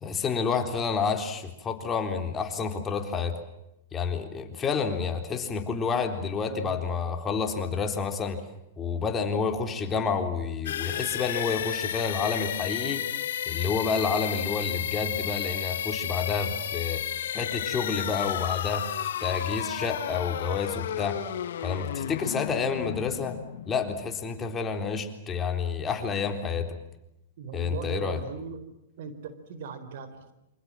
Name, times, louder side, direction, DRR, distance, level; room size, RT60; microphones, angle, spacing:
voice 1, 0.0-3.4 3.9-8.4 8.8-13.0 13.5-17.0 17.3-18.9 19.2-21.2 21.6-23.4 23.7-26.8 27.5-28.2, left 5 dB, 20° left, 5 dB, 3.8 m, -29 dB
voice 2, 6.5-6.8 27.4-28.6 29.0-30.3, right 6 dB, 65° right, 11 dB, 4.3 m, -39 dB
sound 1, 10.7-24.4, left 10 dB, 70° left, 1.6 m, -33 dB
28.0 x 25.5 x 7.6 m, 0.86 s
hypercardioid pair, 120°, 0 cm